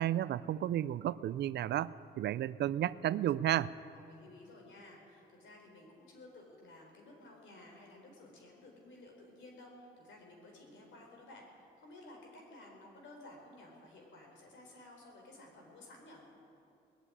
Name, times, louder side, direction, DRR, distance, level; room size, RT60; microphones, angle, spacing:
voice 1, 0.0-3.7, right 12 dB, 60° right, 18 dB, 0.4 m, -32 dB
voice 2, 3.9-16.2, left 2 dB, 70° left, 0 dB, 4.1 m, -55 dB
20.0 x 7.3 x 9.9 m, 2.7 s
cardioid pair, 90°, 20 cm